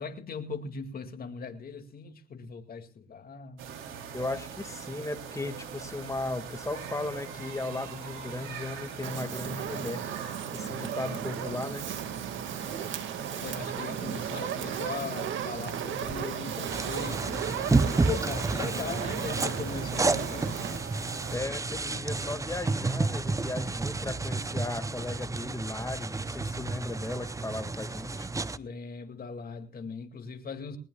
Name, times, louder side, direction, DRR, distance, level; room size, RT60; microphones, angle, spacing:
voice 1, 0.0-3.7 13.4-17.5 18.1-20.6 28.3-30.8, left 5 dB, 50° left, 2.3 m, -39 dB
sound 1, 3.6-21.4, right 7 dB, 90° right, 3.3 m, -41 dB
voice 2, 4.1-10.0 10.5-11.8 21.3-28.3, left 2 dB, 15° left, 1.9 m, -36 dB
Fire, 9.0-20.8, right 8 dB, 75° right, 2.0 m, -36 dB
sound 2, 16.7-28.6, right 3 dB, 15° right, 0.6 m, -31 dB
20.0 x 19.5 x 2.4 m
cardioid pair, 90°, 20 cm